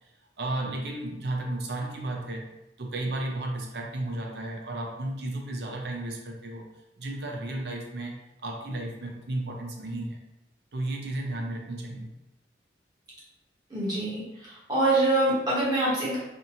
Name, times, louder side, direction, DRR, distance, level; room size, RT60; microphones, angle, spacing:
voice 1, 0.4-2.5 2.8-6.7 7.0-10.2 10.7-12.1, right 1 dB, 65° right, 1 dB, 0.5 m, -33 dB
voice 2, 13.7-16.2, right 2 dB, 20° right, -8 dB, 0.8 m, -25 dB
2.6 x 2.5 x 2.7 m, 0.91 s
head